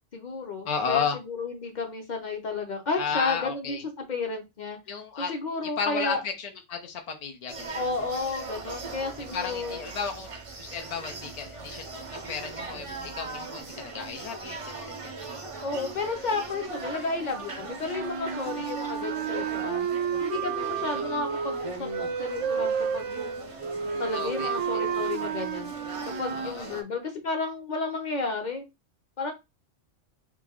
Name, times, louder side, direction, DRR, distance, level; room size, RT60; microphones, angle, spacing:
voice 1, 0.1-4.8 5.2-6.2 7.7-9.8 15.6-19.9 20.2-23.5 24.0-25.7 26.0-28.7 29.2-29.3, left 3 dB, 45° left, 4 dB, 0.8 m, -32 dB
voice 2, 0.7-1.2 3.0-3.8 4.9-5.3 5.8-7.8 9.3-10.3 10.6-12.9 13.1-14.7 15.0-15.1 20.9-21.2 23.7-24.6 26.3-26.8, left 6 dB, 60° left, 5 dB, 0.4 m, -33 dB
sound 1, 7.5-26.8, right 3 dB, 35° right, 0.5 m, -40 dB
sound 2, 17.9-26.6, right 7 dB, 85° right, 0.9 m, -31 dB
3.1 x 2.4 x 3.6 m, 0.23 s
omnidirectional pair, 1.3 m